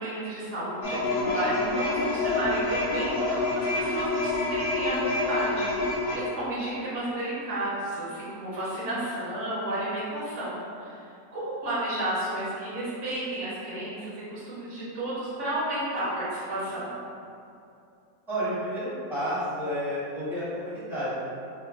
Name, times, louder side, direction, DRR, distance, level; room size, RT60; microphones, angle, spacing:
voice 1, 0.0-11.0 11.3-17.0, right 1 dB, 50° right, -9 dB, 1.1 m, -32 dB
sound 1, 0.8-6.2, left 2 dB, 70° left, 1.0 m, -27 dB
voice 2, 18.3-21.2, equal, ahead, -13 dB, 0.7 m, -31 dB
4.3 x 2.2 x 2.4 m, 2.6 s
omnidirectional pair, 1.9 m